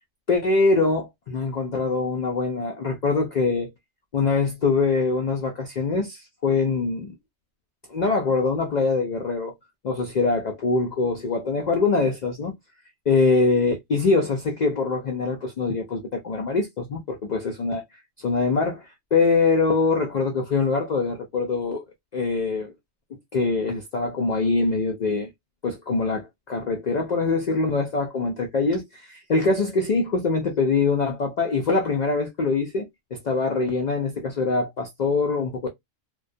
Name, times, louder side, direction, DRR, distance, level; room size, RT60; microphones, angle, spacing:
voice 1, 0.3-3.7 4.1-7.1 7.9-9.5 9.8-12.5 13.1-17.8 18.2-21.8 22.1-22.7 23.3-25.3 25.6-35.7, left 3 dB, 85° left, 0.3 m, -23 dB
2.3 x 2.2 x 2.4 m
omnidirectional pair, 1.3 m